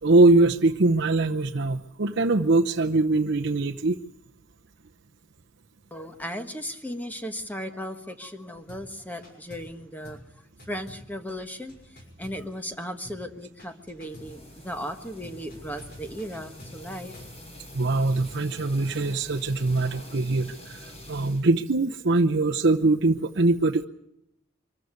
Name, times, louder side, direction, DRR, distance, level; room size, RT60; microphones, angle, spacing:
voice 1, 0.0-4.0 17.7-20.8 21.1-23.8, right 2 dB, 60° right, 2 dB, 0.8 m, -22 dB
voice 2, 5.9-10.2 10.7-17.1, equal, 10° left, 7 dB, 1.4 m, -36 dB
sound 1, 8.7-8.9 9.2-9.8 10.0-10.3 10.6-12.8 13.0-13.3 13.6-14.4 15.2-17.4, equal, 50° left, 6.3 m, -48 dB
sound 2, 14.0-21.5, left 1 dB, 30° left, 4.7 m, -46 dB
24.0 x 14.5 x 9.6 m, 0.80 s
head